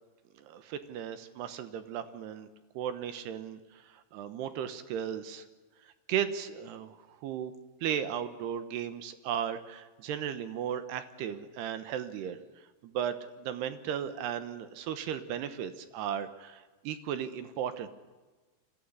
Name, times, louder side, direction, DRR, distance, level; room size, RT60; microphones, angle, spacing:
voice 1, 0.4-2.5 2.7-3.8 4.1-5.4 6.1-7.5 7.8-12.4 12.8-17.9, right 9 dB, 75° right, 10 dB, 2.8 m, -35 dB
24.0 x 15.5 x 9.6 m, 1.3 s
omnidirectional pair, 5.5 m